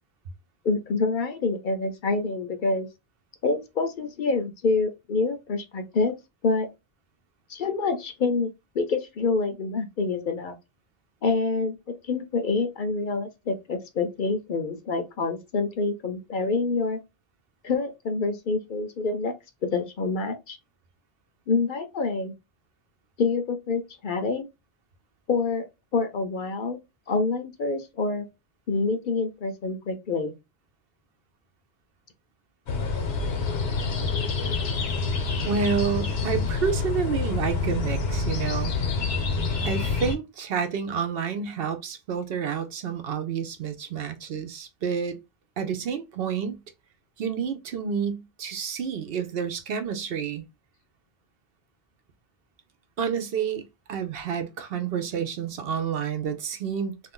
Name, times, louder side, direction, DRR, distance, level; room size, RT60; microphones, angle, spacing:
voice 1, 0.6-2.9 3.4-6.2 6.4-6.7 7.5-10.6 11.2-11.8 12.0-17.0 17.6-19.3 19.6-20.6 21.5-22.3 23.2-24.5 25.3-25.7 25.9-26.8 27.1-28.3 28.7-30.3, left 3 dB, 60° left, 0.7 m, -27 dB
sound 1, 32.7-40.1, left 4 dB, 85° left, 1.0 m, -27 dB
voice 2, 35.4-38.7 39.6-45.2 45.6-46.6 47.2-50.5 53.0-53.6 53.9-57.1, right 6 dB, 70° right, 0.8 m, -29 dB
2.5 x 2.5 x 3.6 m
omnidirectional pair, 1.0 m